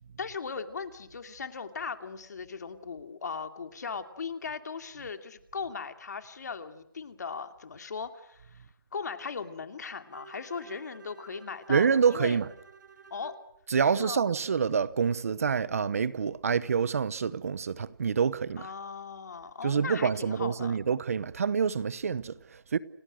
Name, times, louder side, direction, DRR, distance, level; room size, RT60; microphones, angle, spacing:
voice 1, 0.2-8.6 8.9-12.4 13.1-13.4 13.9-14.3 18.6-20.8, left 5 dB, 50° left, 2.7 m, -38 dB
Bowed string instrument, 10.1-13.5, right 4 dB, 60° right, 7.1 m, -52 dB
voice 2, 11.7-12.5 13.7-18.7 19.6-22.8, right 6 dB, 40° right, 0.9 m, -27 dB
30.0 x 19.0 x 7.8 m
hypercardioid pair, 170°, 11 cm